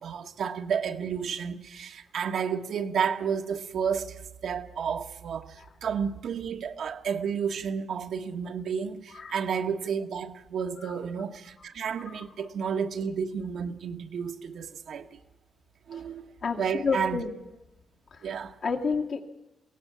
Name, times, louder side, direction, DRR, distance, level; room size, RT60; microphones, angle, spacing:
voice 1, 0.0-15.2 15.9-16.3 16.6-17.2 18.2-18.5, right 7 dB, 65° right, 1.3 m, -31 dB
voice 2, 16.4-17.3 18.1-18.3 18.6-19.2, left 5 dB, 55° left, 2.3 m, -30 dB
22.0 x 18.0 x 7.1 m
cardioid pair, 115°, 0 cm